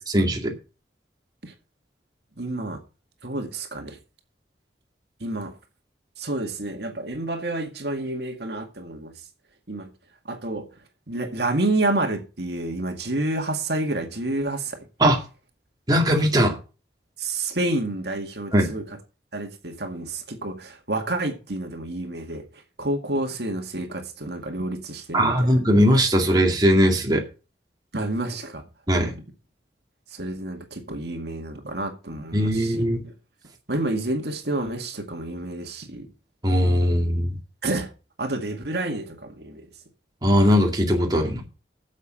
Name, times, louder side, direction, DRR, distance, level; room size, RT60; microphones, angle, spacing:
voice 1, 0.1-0.5 15.0-15.2 15.9-16.6 18.5-18.7 25.1-27.2 28.9-29.1 32.3-33.0 36.4-37.3 40.2-41.4, equal, 20° right, 2.2 m, -19 dB
voice 2, 2.4-2.8 3.2-4.0 5.2-5.5 6.2-9.1 9.7-9.9 10.3-10.7 11.1-14.8 17.2-18.8 19.3-22.4 22.8-25.5 27.9-28.6 30.1-33.1 33.7-36.1 37.6-37.9 38.2-39.6, right 2 dB, 65° right, 2.1 m, -29 dB
8.5 x 7.4 x 7.5 m
head